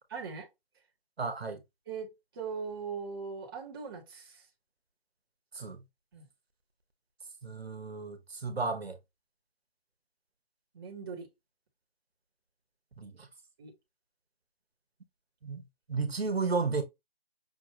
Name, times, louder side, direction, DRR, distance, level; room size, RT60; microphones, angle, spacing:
voice 1, 0.1-0.5 1.9-4.5 6.1-6.2 10.7-11.3 13.6-13.7, right 5 dB, 25° right, 0.8 m, -40 dB
voice 2, 1.2-1.6 5.5-5.8 7.4-9.0 13.0-13.3 15.4-15.6 15.9-16.8, right 4 dB, 85° right, 1.2 m, -33 dB
5.7 x 2.5 x 2.8 m
figure-of-eight pair, 155°, 30 cm